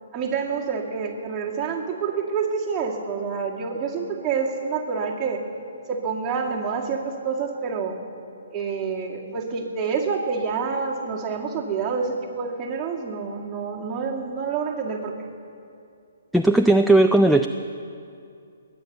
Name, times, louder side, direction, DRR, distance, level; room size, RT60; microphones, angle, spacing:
voice 1, 0.1-5.4 5.9-8.0 8.5-15.3, right 5 dB, 20° right, -2 dB, 2.1 m, -27 dB
voice 2, 16.3-17.5, right 2 dB, ahead, 5 dB, 0.4 m, -16 dB
21.5 x 9.3 x 6.7 m, 2.4 s
figure-of-eight pair, 135°, 0 cm